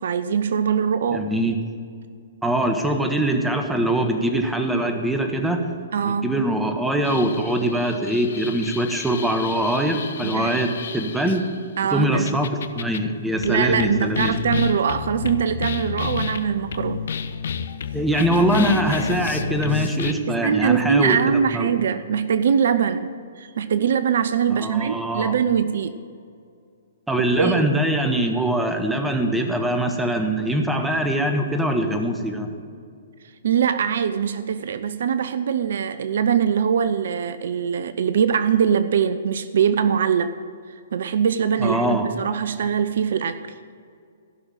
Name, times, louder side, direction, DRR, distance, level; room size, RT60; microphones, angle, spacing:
voice 1, 0.0-1.3 5.9-6.4 10.2-10.6 11.8-12.4 13.4-17.1 20.3-26.0 27.4-27.6 33.4-40.4 40.9-43.4, right 7 dB, 65° right, 13 dB, 0.5 m, -22 dB
voice 2, 1.1-1.6 2.4-5.7 6.0-11.4 11.9-14.3 17.9-21.2 21.5-21.7 24.5-25.3 27.1-32.5 41.6-42.1, right 1 dB, 5° right, 4 dB, 1.3 m, -23 dB
sound 1, 7.0-11.6 12.3-13.0 13.4-20.1, left 7 dB, 65° left, 0.6 m, -30 dB
15.5 x 6.2 x 9.0 m, 2.3 s
figure-of-eight pair, 120°, 0 cm